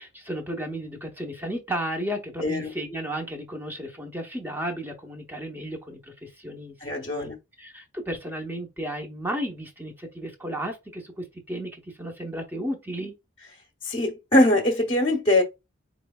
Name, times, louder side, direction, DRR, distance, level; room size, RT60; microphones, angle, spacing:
voice 1, 0.0-6.7 7.1-7.3 7.6-13.1, right 1 dB, 10° right, 0.8 m, -33 dB
voice 2, 2.4-2.7 6.8-7.4 13.8-15.4, left 1 dB, 30° left, 0.8 m, -22 dB
4.4 x 3.1 x 2.2 m
head